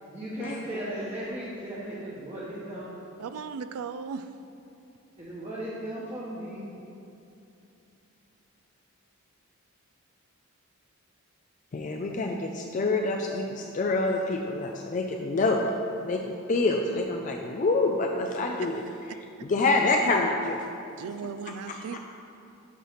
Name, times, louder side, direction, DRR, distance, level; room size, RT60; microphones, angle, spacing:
voice 1, 0.1-2.9 5.2-6.7, right 1 dB, 25° right, -8 dB, 0.9 m, -36 dB
voice 2, 3.2-4.3 21.0-22.0, right 6 dB, 85° right, 11 dB, 0.3 m, -36 dB
voice 3, 11.7-15.6 16.0-18.7 19.1-20.7 21.7-22.0, left 3 dB, 35° left, 1 dB, 0.3 m, -27 dB
8.2 x 3.1 x 5.7 m, 2.8 s
head